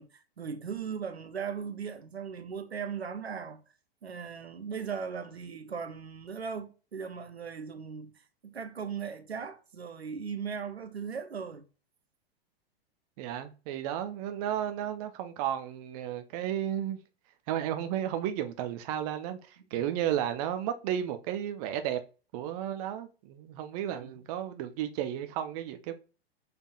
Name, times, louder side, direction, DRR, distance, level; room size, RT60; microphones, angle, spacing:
voice 1, 0.0-3.6 4.0-8.1 8.4-11.6 23.9-24.1, right 6 dB, 85° right, 0.7 m, -38 dB
voice 2, 13.2-17.0 17.5-22.0 22.3-25.9, right 10 dB, 40° right, 0.6 m, -33 dB
5.8 x 3.5 x 2.3 m
figure-of-eight pair, 105°, 31 cm